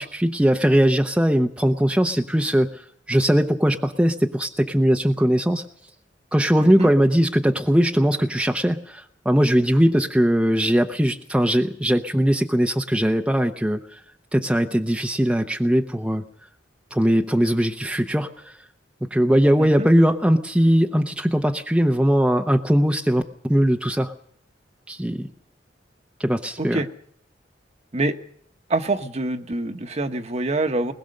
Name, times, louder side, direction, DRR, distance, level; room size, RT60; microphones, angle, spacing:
voice 1, 0.0-2.8 3.1-5.6 6.3-14.0 14.3-16.2 16.9-18.5 19.1-23.2 23.5-24.1 24.9-25.3 26.2-26.8, equal, 5° right, 3 dB, 0.7 m, -20 dB
voice 2, 6.6-6.9 19.6-19.9 26.6-26.9 27.9-28.2 28.7-30.9, right 2 dB, 35° right, 7 dB, 1.2 m, -25 dB
21.0 x 20.5 x 6.5 m, 0.66 s
head